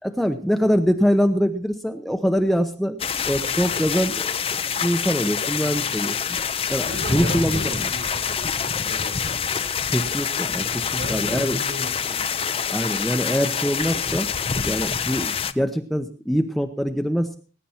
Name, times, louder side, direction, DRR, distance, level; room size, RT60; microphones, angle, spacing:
voice 1, 0.0-3.0 3.2-4.4 4.8-6.1 6.7-7.8 9.9-11.6 12.7-14.3 14.6-17.4, equal, ahead, 6 dB, 0.8 m, -23 dB
sound 1, 3.0-15.5, left 6 dB, 30° left, 0.6 m, -26 dB
voice 2, 6.8-9.6 11.0-12.5, right 1 dB, 60° right, 4 dB, 4.3 m, -36 dB
20.0 x 10.0 x 4.4 m, 0.37 s
head